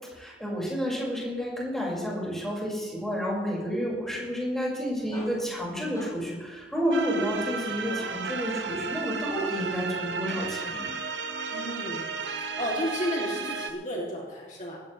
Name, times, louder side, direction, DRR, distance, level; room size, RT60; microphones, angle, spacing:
voice 1, 0.1-10.9, equal, ahead, -4 dB, 5.5 m, -30 dB
sound 1, 4.8-9.8, right 1 dB, 25° left, 4.9 m, -48 dB
sound 2, 6.9-13.7, right 5 dB, 80° right, 1.2 m, -33 dB
voice 2, 11.5-14.8, equal, 45° left, -3 dB, 2.8 m, -33 dB
18.0 x 16.0 x 3.3 m, 1.4 s
head